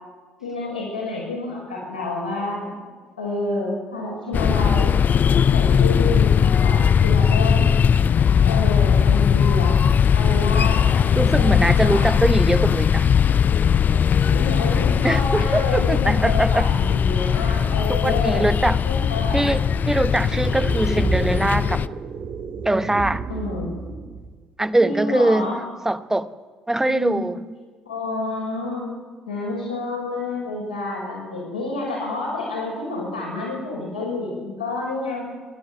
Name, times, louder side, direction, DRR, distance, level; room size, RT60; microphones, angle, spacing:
voice 1, 0.4-2.8 3.2-4.9 5.5-6.3 6.6-7.8 8.4-9.8 10.1-10.9 11.3-12.2 14.3-18.5 18.8-19.5 23.3-23.8 24.8-25.6 26.9-27.2 27.8-28.9 29.3-35.2, left 2 dB, 85° left, 5.8 m, -28 dB
sound 1, 4.3-21.9, left 7 dB, 40° left, 0.6 m, -19 dB
voice 2, 11.1-13.1 15.0-16.7 17.9-18.8 19.3-21.8 22.6-23.2 24.6-25.5 25.8-26.3 26.7-27.4, right 1 dB, 10° right, 1.1 m, -22 dB
sound 2, 19.6-24.5, right 4 dB, 40° right, 1.4 m, -31 dB
27.5 x 12.0 x 7.8 m
figure-of-eight pair, 50°, 5 cm